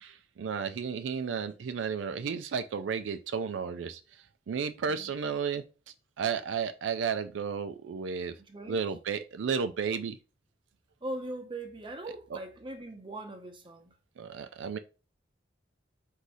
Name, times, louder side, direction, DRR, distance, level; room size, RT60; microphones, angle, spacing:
voice 1, 0.0-4.0 4.5-5.6 6.2-8.3 8.7-10.2 12.3-12.4 14.2-14.8, right 6 dB, 80° right, 0.4 m, -33 dB
voice 2, 8.5-8.8 11.0-13.9, right 1 dB, 30° right, 0.8 m, -40 dB
4.0 x 2.7 x 4.7 m
head